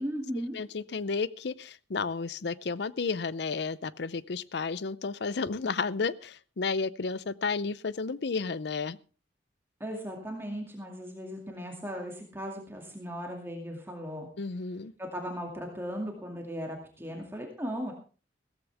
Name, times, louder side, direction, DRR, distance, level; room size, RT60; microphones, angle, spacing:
voice 1, 0.0-0.6 9.8-14.3 15.0-17.9, equal, 10° right, 1 dB, 2.3 m, -37 dB
voice 2, 0.5-9.0 14.4-14.9, left 4 dB, 60° left, 19 dB, 0.5 m, -32 dB
16.0 x 14.0 x 3.4 m, 0.36 s
head